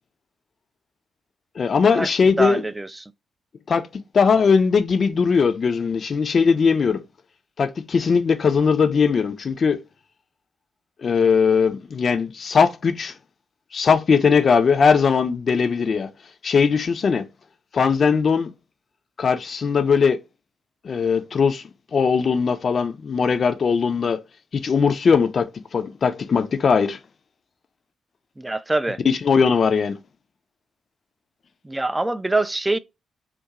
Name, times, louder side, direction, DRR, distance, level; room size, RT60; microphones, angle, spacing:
voice 1, 1.6-2.6 3.7-3.9 4.1-7.0 7.6-9.8 11.0-13.1 13.7-16.1 16.4-17.3 17.7-18.5 19.2-20.2 20.8-21.6 21.9-24.2 24.5-27.0 29.0-30.0, left 5 dB, 50° left, 0.4 m, -19 dB
voice 2, 2.4-2.9 28.4-29.0 31.6-32.8, right 2 dB, 15° right, 0.3 m, -24 dB
2.4 x 2.2 x 2.8 m
hypercardioid pair, 40°, 0 cm